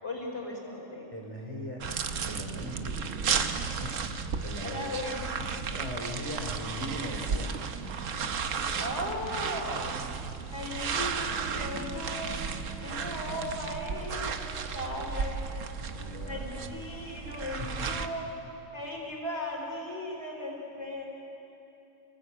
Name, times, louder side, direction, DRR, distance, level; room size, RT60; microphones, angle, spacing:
voice 1, 0.0-1.1 4.6-5.2 8.7-10.0 10.5-12.4 12.8-15.5 16.3-18.3 18.7-21.1, left 1 dB, 55° left, -1 dB, 4.3 m, -37 dB
voice 2, 1.1-1.8 2.2-3.5 3.8-4.1 4.4-4.9 5.4-7.5 15.8-16.5 17.6-17.9, left 1 dB, 25° right, 0 dB, 3.8 m, -39 dB
sound 1, 1.8-18.1, right 6 dB, 75° right, 1.3 m, -34 dB
28.0 x 19.0 x 8.4 m, 2.8 s
omnidirectional pair, 1.4 m